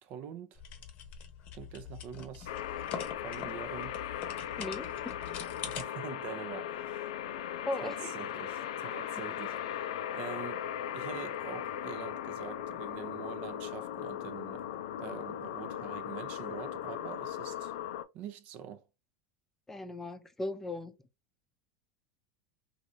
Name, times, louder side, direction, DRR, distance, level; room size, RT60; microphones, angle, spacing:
voice 1, 0.0-0.6 1.5-2.5 3.2-4.0 5.7-7.1 7.8-9.6 10.1-10.6 10.9-14.7 15.0-17.7 18.1-18.8, right 9 dB, 55° right, 0.5 m, -45 dB
sound 1, 0.5-5.8, left 7 dB, 45° left, 0.8 m, -44 dB
sound 2, 2.5-18.0, left 10 dB, 85° left, 0.4 m, -38 dB
voice 2, 4.6-5.1 7.7-8.0 19.7-20.9, left 2 dB, 10° left, 0.5 m, -37 dB
3.2 x 2.6 x 2.5 m
supercardioid pair, 115°, 3 cm